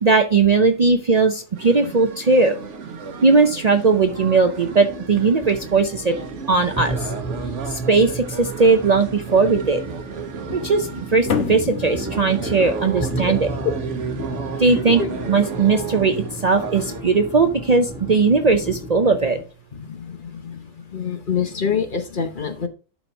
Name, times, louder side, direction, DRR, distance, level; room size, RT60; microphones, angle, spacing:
voice 1, 0.0-2.6 3.2-6.1 6.5-7.1 7.7-9.8 10.5-13.5 14.6-15.0 15.3-19.4, right 4 dB, 45° right, 6 dB, 0.6 m, -18 dB
sound 1, 1.6-17.0, right 6 dB, 75° right, 1.3 m, -34 dB
sound 2, 2.6-19.4, right 1 dB, 5° right, 1.6 m, -33 dB
voice 2, 10.5-10.8 13.1-13.3 13.6-13.7 15.0-15.1 19.7-20.6 20.9-22.7, left 6 dB, 45° left, 7 dB, 1.0 m, -26 dB
sound 3, 11.3-18.0, left 7 dB, 70° left, 1.4 m, -33 dB
11.5 x 4.3 x 3.4 m, 0.35 s
omnidirectional pair, 1.3 m